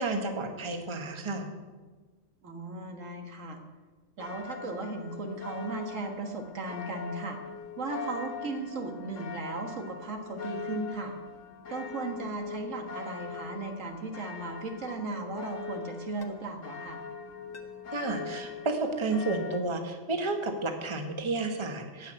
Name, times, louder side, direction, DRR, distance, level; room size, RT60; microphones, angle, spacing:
voice 1, 0.0-1.5 17.9-22.1, right 3 dB, 25° right, 4 dB, 1.2 m, -31 dB
voice 2, 2.4-3.6 4.2-7.4 7.8-11.2 11.7-17.0, right 3 dB, 80° right, 3 dB, 1.9 m, -36 dB
sound 1, 4.2-19.6, left 5 dB, 80° left, 1.6 m, -41 dB
sound 2, 13.5-13.7 14.9-15.0 16.2-16.3 17.5-17.6, left 6 dB, 45° left, 1.3 m, -48 dB
15.0 x 5.8 x 8.9 m, 1.3 s
omnidirectional pair, 1.3 m